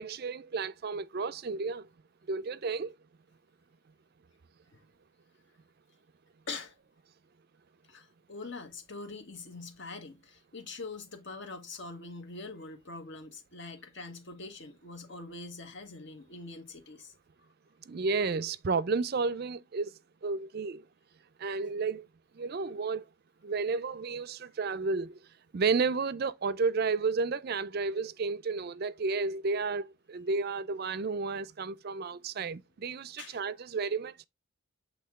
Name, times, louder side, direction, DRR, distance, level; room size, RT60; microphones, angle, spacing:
voice 1, 0.0-1.9 2.3-2.9 17.9-19.9 20.2-20.9 21.4-22.1 22.3-23.1 23.4-25.2 25.5-34.3, right 4 dB, 45° right, 0.4 m, -32 dB
voice 2, 7.9-17.1 33.2-33.5, left 3 dB, 55° left, 1.2 m, -44 dB
7.8 x 3.5 x 3.5 m
head